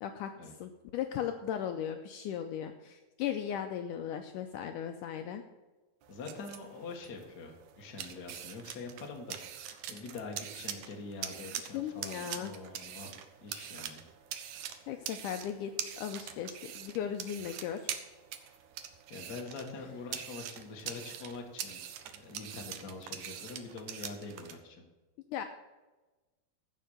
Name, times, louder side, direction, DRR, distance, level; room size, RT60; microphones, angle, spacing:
voice 1, 0.0-0.3 0.6-5.4 11.7-12.5 14.9-17.9 25.3-25.4, left 9 dB, 85° left, 6 dB, 1.9 m, -37 dB
sound 1, 6.0-24.6, right 9 dB, 75° right, 1.8 m, -44 dB
voice 2, 6.1-9.4 9.6-13.1 13.4-14.0 19.1-24.8, left 3 dB, 40° left, 1 dB, 1.4 m, -44 dB
15.0 x 5.6 x 6.6 m, 1.2 s
omnidirectional pair, 4.3 m